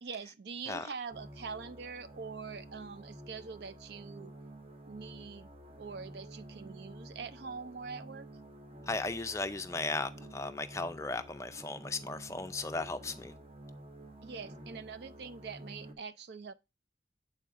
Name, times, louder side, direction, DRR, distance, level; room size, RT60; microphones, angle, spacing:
voice 1, 0.0-4.3 4.9-5.5 5.8-8.3 14.2-16.5, right 5 dB, 60° right, 0.5 m, -44 dB
sound 1, 1.1-16.0, right 1 dB, 30° right, 0.7 m, -50 dB
voice 2, 8.9-13.3, left 3 dB, 15° left, 0.4 m, -36 dB
8.5 x 4.1 x 3.6 m
head